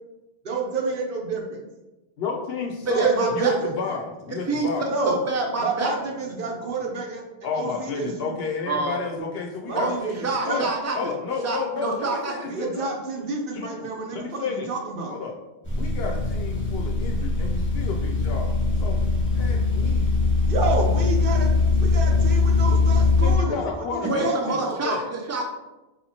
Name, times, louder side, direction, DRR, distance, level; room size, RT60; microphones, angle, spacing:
voice 1, 0.4-1.6 2.9-3.7 4.9-5.2 5.6-7.2 7.5-8.4 9.7-10.7 12.5-15.1 20.5-24.8, right 4 dB, 60° right, 0 dB, 0.9 m, -29 dB
voice 2, 2.2-3.1 3.3-4.9 7.4-10.1 10.5-12.9 13.2-14.7 15.1-15.4 15.7-18.5 18.8-19.0 19.3-20.2 23.2-25.0, left 5 dB, 70° left, 1 dB, 0.8 m, -32 dB
voice 3, 2.9-3.5 4.5-4.7 5.1-5.9 8.7-9.0 9.8-9.9 10.2-11.1 11.4-12.4 24.0-25.4, right 3 dB, 25° right, 1 dB, 0.4 m, -26 dB
sound 1, 15.6-23.4, left 3 dB, 10° left, 1.1 m, -21 dB
5.1 x 2.8 x 2.8 m, 1.0 s
omnidirectional pair, 1.1 m